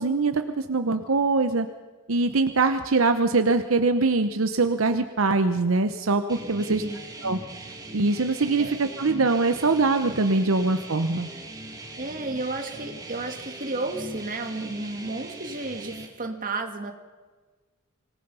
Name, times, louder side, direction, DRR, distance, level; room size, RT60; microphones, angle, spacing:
voice 1, 0.0-1.7 2.1-6.8 7.2-7.4 7.9-11.3, right 3 dB, 75° right, 8 dB, 0.9 m, -23 dB
sound 1, 6.3-16.1, right 2 dB, 20° right, 2.5 m, -40 dB
voice 2, 6.6-7.0 8.6-8.7 12.0-16.9, right 2 dB, 40° right, 5 dB, 2.2 m, -32 dB
25.5 x 18.5 x 5.6 m, 1.4 s
head